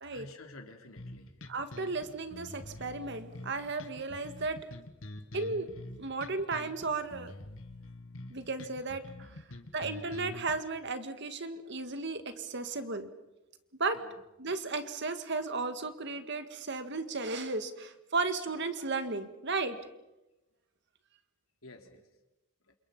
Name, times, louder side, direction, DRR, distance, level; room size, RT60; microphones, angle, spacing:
voice 1, 0.1-1.3 9.3-9.8 13.9-14.2 21.6-22.1 22.7-22.8, left 2 dB, 85° left, 4 dB, 3.6 m, -52 dB
sound 1, 1.0-10.6, left 1 dB, 70° left, 2.1 m, -46 dB
voice 2, 1.5-4.6 5.3-5.7 6.0-7.3 8.3-9.3 9.7-13.1 13.8-14.0 14.4-19.8, right 3 dB, 55° right, 9 dB, 1.9 m, -34 dB
30.0 x 27.5 x 5.5 m, 0.97 s
head